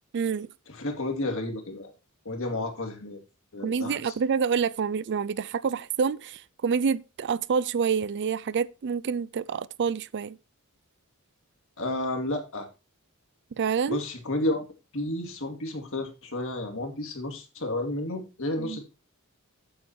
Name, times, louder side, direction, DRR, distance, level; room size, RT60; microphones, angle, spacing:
voice 1, 0.1-0.5 3.6-10.4 13.6-14.0 18.6-18.8, right 6 dB, 55° right, 0.4 m, -27 dB
voice 2, 0.7-1.9 2.2-3.2 3.5-4.1 11.8-12.7 13.9-14.6 14.9-18.8, left 1 dB, 65° left, 2.5 m, -31 dB
8.5 x 7.3 x 4.3 m
head